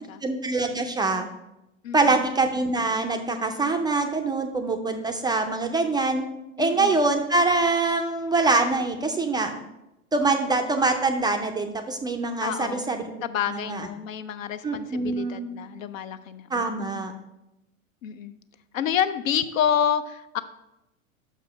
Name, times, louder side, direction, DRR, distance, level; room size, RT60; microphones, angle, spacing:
voice 1, 0.2-1.3 1.9-6.2 6.6-9.5 10.1-13.1 13.5-13.9 14.6-15.5 16.5-17.1, right 3 dB, 10° right, 5 dB, 0.4 m, -24 dB
voice 2, 6.6-7.0 12.4-12.9 13.2-16.9 18.0-18.3 18.7-20.4, left 8 dB, 70° left, 11 dB, 0.7 m, -28 dB
6.0 x 4.9 x 5.5 m, 0.91 s
hypercardioid pair, 90°, 41 cm